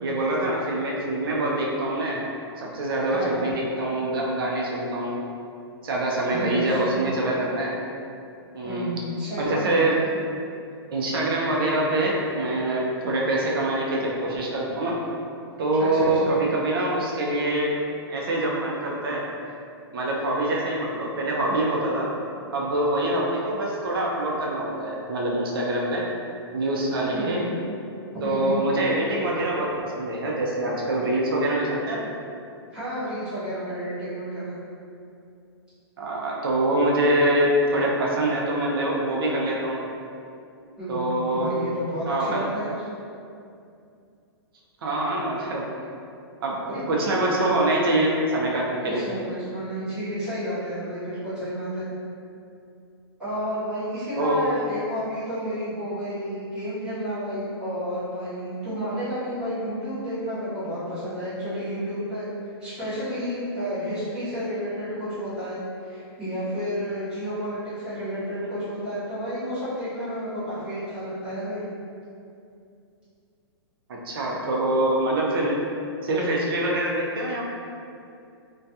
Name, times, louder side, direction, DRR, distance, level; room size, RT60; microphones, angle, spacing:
voice 1, 0.0-2.2 2.6-5.2 5.8-7.8 8.5-8.9 9.4-10.2 10.9-15.0 15.6-17.8 18.1-19.2 19.9-22.1 22.5-26.1 26.5-27.4 28.2-32.1 36.0-39.8 40.9-41.5 42.1-42.5 44.8-45.7 46.4-46.6 46.9-49.0 54.2-54.4 73.9-75.7 76.0-77.5, right 1 dB, 60° right, -3 dB, 0.5 m, -25 dB
voice 2, 3.1-3.5 6.3-7.1 8.6-9.8 15.8-16.3 27.1-27.5 28.1-28.6 32.7-34.5 40.8-42.7 46.6-46.8 48.8-51.9 53.2-62.3 62.6-71.6, equal, 5° right, -16 dB, 0.8 m, -31 dB
2.3 x 2.2 x 2.6 m, 2.5 s
hypercardioid pair, 170°, 14 cm